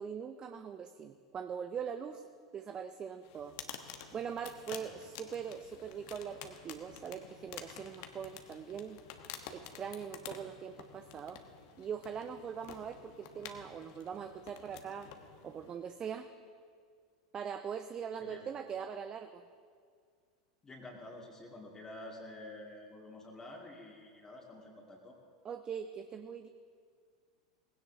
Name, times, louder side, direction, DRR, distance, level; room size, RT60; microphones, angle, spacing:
voice 1, 0.0-2.3 2.5-9.0 9.5-11.4 11.8-15.1 15.4-16.3 17.3-19.4 25.4-26.5, right 7 dB, 25° right, 9 dB, 0.5 m, -42 dB
sound 1, 3.2-15.9, left 8 dB, 50° left, 1.1 m, -50 dB
voice 2, 20.6-25.2, left 1 dB, 20° left, -3 dB, 2.2 m, -49 dB
19.5 x 16.5 x 2.7 m, 2.1 s
figure-of-eight pair, 85°, 3 cm